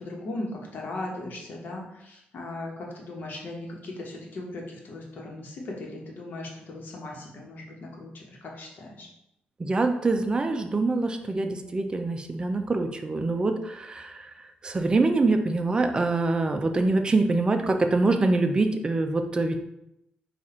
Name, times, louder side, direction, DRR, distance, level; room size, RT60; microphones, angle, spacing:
voice 1, 0.0-9.1, left 2 dB, 65° left, -1 dB, 1.0 m, -38 dB
voice 2, 9.6-14.1 14.6-19.6, right 3 dB, 25° right, 5 dB, 0.5 m, -24 dB
4.1 x 2.4 x 4.2 m, 0.83 s
cardioid pair, 100°, 3 cm